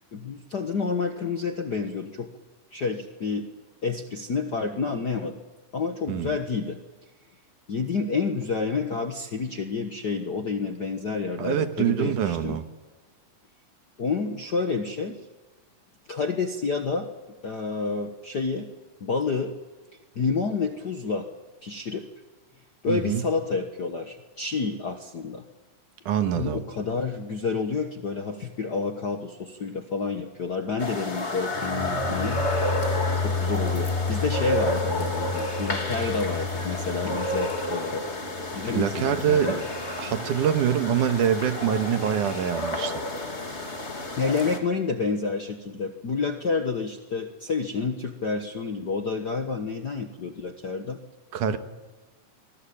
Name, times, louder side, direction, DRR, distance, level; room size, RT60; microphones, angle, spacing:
voice 1, 0.0-2.3 2.7-3.5 3.8-5.4 5.7-6.8 7.7-12.6 14.0-15.2 16.1-17.1 17.4-18.7 19.0-19.5 20.1-21.3 21.6-22.1 22.8-25.4 26.3-32.4 32.7-38.0 38.5-39.6 44.2-51.0, left 4 dB, 55° left, 1.2 m, -29 dB
voice 2, 11.4-12.6 22.9-23.2 26.1-26.6 38.7-39.6 40.0-43.1 51.3-51.6, right 8 dB, 75° right, 2.8 m, -25 dB
sound 1, 30.8-44.6, left 1 dB, 20° left, 2.3 m, -31 dB
sound 2, 31.5-40.4, left 3 dB, 55° right, 2.4 m, -31 dB
24.5 x 20.5 x 8.7 m
omnidirectional pair, 3.7 m